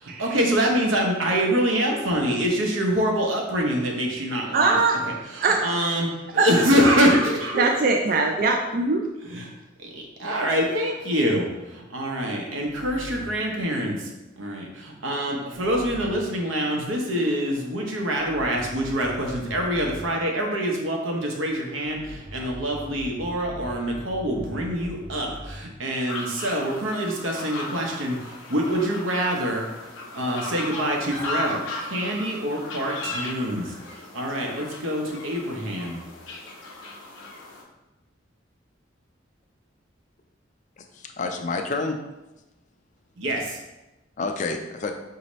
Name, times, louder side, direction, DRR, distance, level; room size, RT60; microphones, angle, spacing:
voice 1, 0.0-4.8 5.1-7.7 9.3-9.5 10.2-14.1 14.4-29.7 30.1-36.0 43.2-43.6, equal, 85° right, 0 dB, 0.9 m, -25 dB
voice 2, 4.5-5.0 5.4-5.7 6.4-6.5 7.6-9.1, right 3 dB, 45° right, 2 dB, 0.3 m, -21 dB
sound 1, 10.8-13.5 15.5-16.4 17.2-20.2 21.9-25.7, equal, 25° right, 0.7 m, -42 dB
sound 2, 26.1-37.6, left 2 dB, 90° left, 0.8 m, -36 dB
voice 3, 40.8-42.0 44.2-44.9, left 3 dB, 40° left, 4 dB, 0.4 m, -29 dB
5.2 x 2.8 x 3.0 m, 1.0 s
head